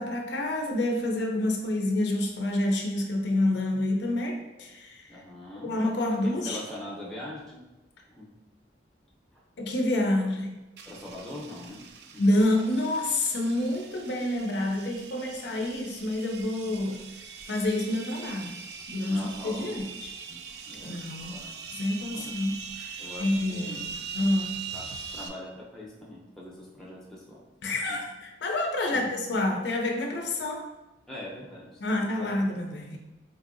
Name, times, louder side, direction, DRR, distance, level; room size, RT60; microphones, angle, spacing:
voice 1, 0.0-5.1 5.6-6.6 9.6-10.6 12.2-17.0 17.5-18.5 18.9-20.1 20.8-21.4 21.7-24.6 27.6-30.7 31.8-33.0, left 1 dB, 70° left, 2 dB, 0.5 m, -28 dB
voice 2, 5.1-5.7 6.2-7.6 8.2-8.3 10.9-11.8 12.1-12.2 19.0-19.7 20.3-21.0 21.3-21.5 22.1-22.3 23.0-23.9 24.7-27.4 27.9-28.0 28.9-29.1 31.1-31.8 32.2-32.3, left 1 dB, 5° left, -6 dB, 0.6 m, -42 dB
sound 1, 10.8-25.3, right 6 dB, 60° right, 0.3 m, -42 dB
4.0 x 2.7 x 2.5 m, 1.0 s
head